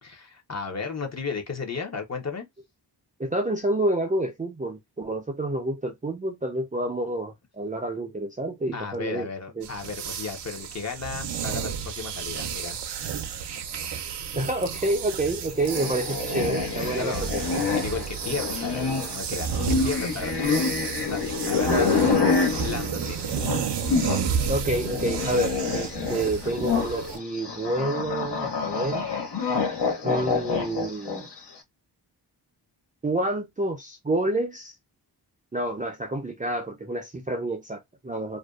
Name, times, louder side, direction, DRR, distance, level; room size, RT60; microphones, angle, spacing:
voice 1, 0.0-2.5 8.7-12.8 17.0-17.3 17.8-20.6 21.1-21.7 22.5-23.2, left 5 dB, 40° left, 0.7 m, -34 dB
voice 2, 3.2-9.3 9.6-9.7 14.3-17.7 21.7-22.2 24.5-29.0 30.0-31.3 33.0-34.7 35.5-38.4, right 1 dB, 20° right, 0.4 m, -28 dB
sound 1, 9.6-27.2, right 7 dB, 75° right, 0.5 m, -32 dB
sound 2, 15.5-24.3 24.6-31.4, left 5 dB, 75° left, 0.8 m, -27 dB
2.5 x 2.2 x 2.3 m
wide cardioid pair, 85°, 43 cm